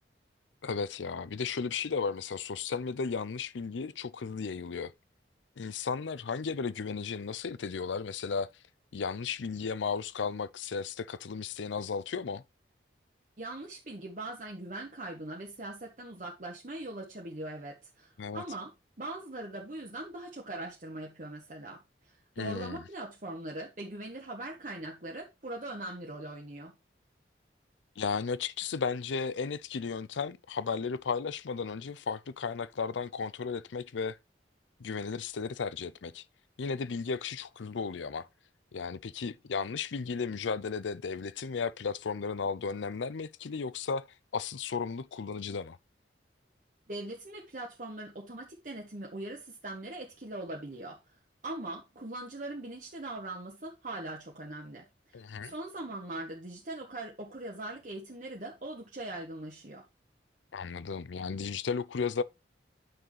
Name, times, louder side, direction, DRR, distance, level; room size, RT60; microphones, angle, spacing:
voice 1, 0.6-4.9 5.6-8.5 8.9-12.4 18.2-18.4 22.4-22.8 28.0-34.2 34.8-36.2 36.6-38.3 38.7-44.1 44.3-45.8 55.1-55.5 60.5-62.2, left 5 dB, 85° left, 0.5 m, -34 dB
voice 2, 13.4-18.7 19.0-21.8 22.1-26.7 46.9-51.2 51.4-54.8 55.4-59.8, right 2 dB, 45° right, 1.3 m, -41 dB
9.3 x 6.2 x 3.2 m
head